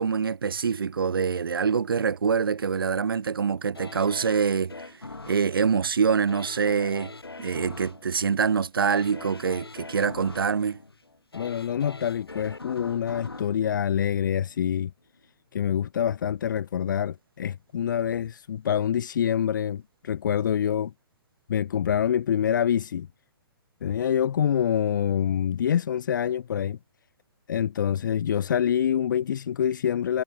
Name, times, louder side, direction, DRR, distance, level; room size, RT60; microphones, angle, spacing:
voice 1, 0.0-4.7 5.3-7.1 7.4-10.8, right 6 dB, 65° right, 0.9 m, -25 dB
sound 1, 3.7-14.7 15.1-15.2, left 3 dB, 75° left, 7.4 m, -43 dB
voice 2, 11.3-14.9 15.5-20.9 21.5-23.1 23.8-26.8 27.5-30.2, left 9 dB, 50° left, 0.8 m, -26 dB
figure-of-eight pair, 120°, 13 cm